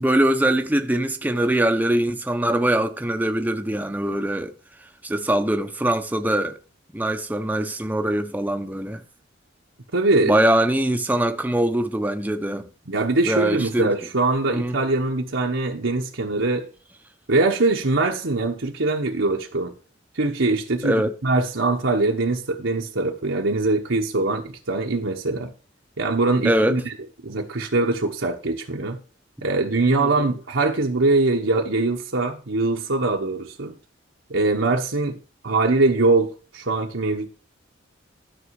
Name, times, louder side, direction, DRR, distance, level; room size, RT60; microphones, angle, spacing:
voice 1, 0.0-4.5 5.0-6.6 6.9-9.0 10.2-12.7 13.3-13.9 14.5-14.8 20.8-21.1 26.4-26.8 30.0-30.3, right 1 dB, 10° right, 0.7 m, -22 dB
voice 2, 9.9-10.4 12.9-16.7 17.3-19.7 20.1-25.5 26.0-26.9 27.2-29.0 29.4-33.7 34.3-35.2 35.4-37.3, right 2 dB, 80° right, 1.2 m, -22 dB
13.0 x 6.2 x 4.8 m
head